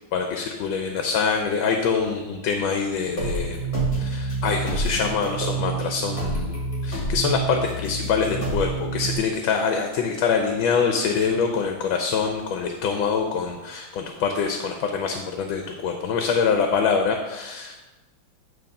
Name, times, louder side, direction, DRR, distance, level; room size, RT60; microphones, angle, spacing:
voice 1, 0.1-3.6 4.0-6.6 6.8-17.8, left 5 dB, 85° left, 4 dB, 1.5 m, -25 dB
sound 1, 3.2-9.2, right 3 dB, 50° left, 2.3 m, -27 dB
9.5 x 3.3 x 5.3 m, 1.1 s
omnidirectional pair, 2.1 m